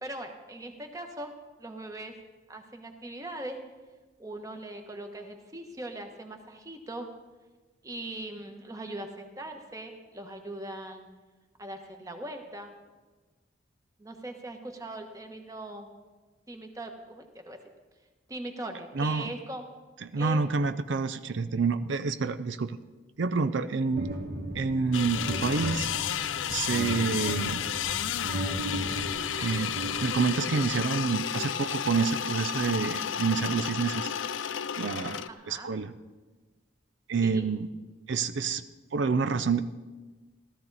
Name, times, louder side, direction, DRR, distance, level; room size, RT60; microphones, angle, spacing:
voice 1, 0.0-2.1 2.5-3.6 4.2-7.1 7.8-11.1 11.6-12.7 14.0-15.9 16.5-17.6 18.3-19.7 20.2-20.4 35.3-35.8 37.2-37.5, right 1 dB, 15° right, 5 dB, 1.2 m, -40 dB
voice 2, 19.0-19.3 20.1-22.8 23.2-24.1 24.5-25.9 26.5-27.6 29.4-34.1 34.8-35.9 37.1-37.7 38.1-38.6 38.9-39.6, right 4 dB, 75° right, 11 dB, 0.5 m, -28 dB
sound 1, 24.0-30.6, right 1 dB, 50° right, 1.7 m, -36 dB
sound 2, 24.9-35.3, left 9 dB, 85° left, 0.5 m, -32 dB
16.0 x 13.5 x 4.1 m, 1.3 s
head